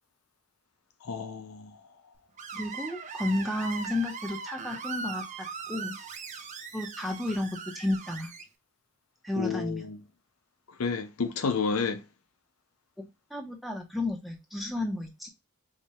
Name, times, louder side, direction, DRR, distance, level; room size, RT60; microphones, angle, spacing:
voice 1, 1.0-1.8 9.4-10.0 10.8-12.0, left 5 dB, 80° left, 0.6 m, -30 dB
Screech, 2.4-8.4, right 5 dB, 35° right, 0.5 m, -39 dB
voice 2, 2.5-6.0 6.7-8.3 9.2-9.8 13.0-15.3, left 1 dB, ahead, 0.7 m, -32 dB
4.6 x 2.3 x 2.8 m
head